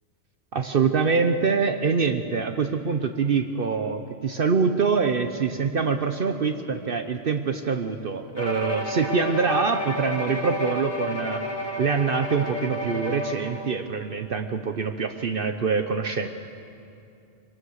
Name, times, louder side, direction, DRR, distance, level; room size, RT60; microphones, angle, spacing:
voice 1, 0.5-11.4 11.8-16.3, right 5 dB, 55° right, 6 dB, 0.9 m, -25 dB
Bowed string instrument, 8.4-13.7, left 1 dB, 35° left, 2.2 m, -31 dB
23.0 x 18.0 x 6.5 m, 2.6 s
omnidirectional pair, 1.2 m